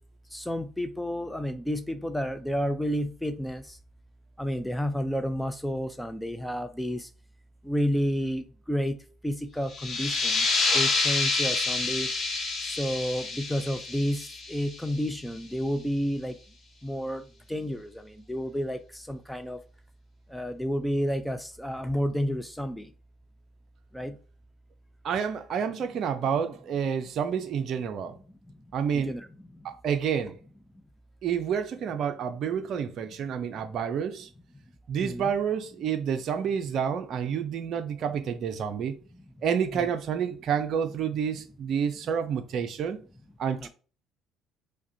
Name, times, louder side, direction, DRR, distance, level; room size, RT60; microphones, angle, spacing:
voice 1, 0.3-3.8 4.4-7.1 7.6-9.0 9.2-10.5 10.7-12.1 12.6-16.4 16.8-17.2 17.5-19.6 20.3-22.9 23.9-24.1 28.9-29.3 35.0-35.3 39.7-39.9 43.6-43.7, equal, 5° left, 0.5 m, -30 dB
sound 1, 9.7-15.1, left 3 dB, 45° left, 1.2 m, -28 dB
voice 2, 25.0-28.2 28.7-29.1 29.6-30.4 31.2-34.3 34.9-39.0 39.4-43.0 43.4-43.7, right 7 dB, 55° right, 0.5 m, -29 dB
4.8 x 2.2 x 2.7 m
hypercardioid pair, 60°, 0 cm